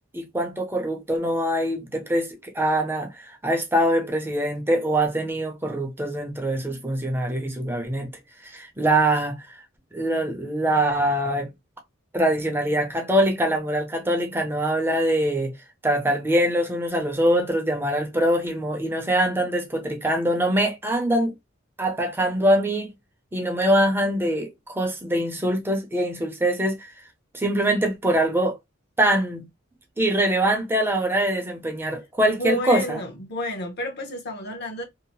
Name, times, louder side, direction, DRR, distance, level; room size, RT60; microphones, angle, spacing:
voice 1, 0.1-8.1 8.5-9.4 9.9-11.5 12.1-15.5 15.8-21.3 21.8-22.9 23.3-26.9 27.3-28.6 29.0-29.5 30.0-33.0, right 1 dB, 10° right, 0.6 m, -23 dB
voice 2, 32.3-34.8, equal, 55° left, 0.8 m, -30 dB
2.8 x 2.0 x 2.9 m
head